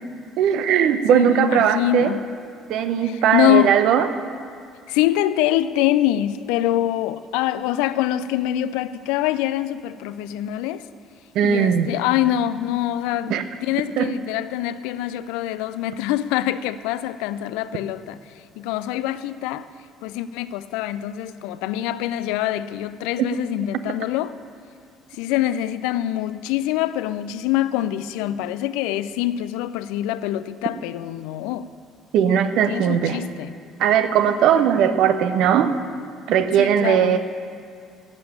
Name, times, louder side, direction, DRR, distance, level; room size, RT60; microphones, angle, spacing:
voice 1, 0.4-2.1 2.7-4.1 11.3-11.9 13.3-13.4 14.0-14.1 32.1-33.2 33.8-35.7 36.3-37.2, right 9 dB, 55° right, 0.7 m, -18 dB
voice 2, 1.1-2.2 3.0-3.8 4.9-10.8 11.4-18.2 18.6-19.7 20.0-24.4 25.1-31.7 32.7-33.5 36.6-37.2, left 13 dB, 60° left, 0.3 m, -24 dB
11.0 x 7.6 x 8.5 m
figure-of-eight pair, 55°, 0 cm